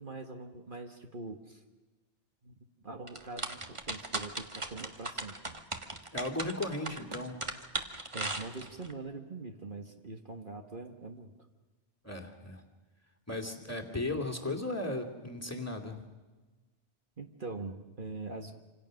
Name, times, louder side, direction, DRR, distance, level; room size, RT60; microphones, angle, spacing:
voice 1, 0.0-1.6 2.4-2.5 2.8-5.4 8.1-11.3 17.2-18.5, right 3 dB, 45° right, 4 dB, 1.6 m, -43 dB
sound 1, 3.1-8.9, right 2 dB, 25° right, 1.5 m, -37 dB
voice 2, 6.1-7.4 12.0-12.6 13.3-16.0, left 2 dB, 15° left, 5 dB, 2.5 m, -36 dB
26.5 x 26.5 x 6.4 m, 1.2 s
omnidirectional pair, 1.2 m